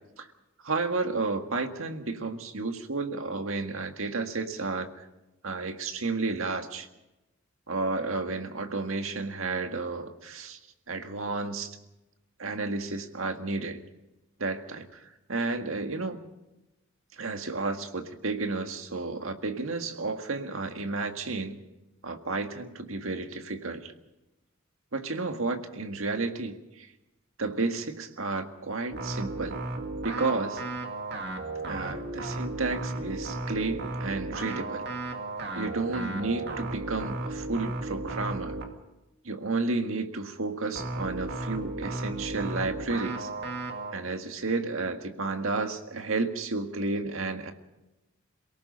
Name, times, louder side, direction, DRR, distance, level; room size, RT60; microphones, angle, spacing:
voice 1, 0.6-5.1 5.4-6.9 7.7-10.6 10.9-11.8 12.4-13.8 14.4-16.2 17.1-21.6 22.0-23.9 24.9-26.9 27.4-29.6 30.0-30.6 31.7-34.9 35.5-38.6 39.2-43.3 43.9-47.5, right 3 dB, 85° right, 6 dB, 1.8 m, -32 dB
sound 1, 28.9-38.8 40.7-43.9, right 2 dB, 55° right, 2.1 m, -34 dB
27.5 x 18.0 x 5.4 m, 0.97 s
head